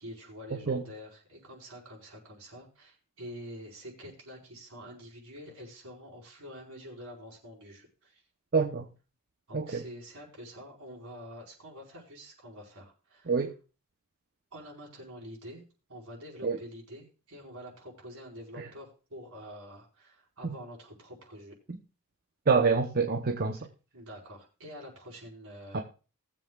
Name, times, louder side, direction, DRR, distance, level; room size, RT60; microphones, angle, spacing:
voice 1, 0.0-8.2 9.5-13.4 14.5-15.6 15.9-21.5 23.9-25.8, equal, 70° right, 4.7 m, -47 dB
voice 2, 8.5-8.8 9.5-9.8 13.3-13.5 16.4-16.6 18.6-18.7 20.4-20.5 22.5-23.6 25.7-25.8, right 5 dB, 45° right, 0.8 m, -26 dB
19.5 x 7.6 x 2.4 m
head